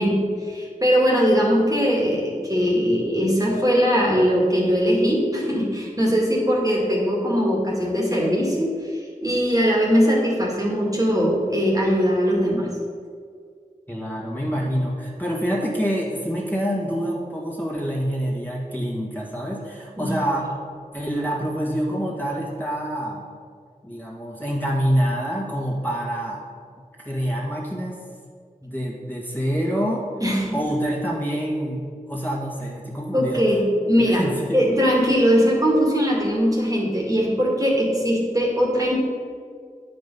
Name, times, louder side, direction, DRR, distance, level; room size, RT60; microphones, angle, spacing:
voice 1, 0.0-8.7 9.2-12.7 20.0-20.1 30.2-30.6 33.1-34.2 34.5-39.0, equal, 25° right, -3 dB, 2.1 m, -20 dB
voice 2, 13.9-20.5 20.9-23.3 23.8-26.4 27.0-28.0 28.6-30.1 30.5-33.4 34.1-34.6, equal, 15° left, -4 dB, 2.0 m, -26 dB
9.3 x 5.3 x 5.5 m, 2.1 s
wide cardioid pair, 40°, 15 cm